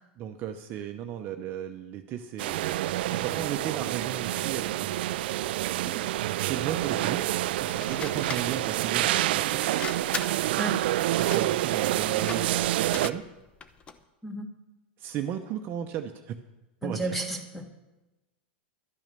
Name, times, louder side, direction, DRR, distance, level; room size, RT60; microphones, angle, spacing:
voice 1, 0.2-5.1 6.4-7.2 7.6-9.6 11.2-13.2 15.0-16.4 16.8-17.2, right 10 dB, 35° right, 6 dB, 0.8 m, -35 dB
sound 1, 2.4-13.1, right 15 dB, 65° right, 0.3 m, -28 dB
sound 2, 7.7-14.0, left 5 dB, 20° left, 0.7 m, -40 dB
voice 2, 16.8-17.7, right 2 dB, ahead, 5 dB, 1.5 m, -32 dB
12.0 x 9.1 x 6.8 m, 1.0 s
supercardioid pair, 140°, 6 cm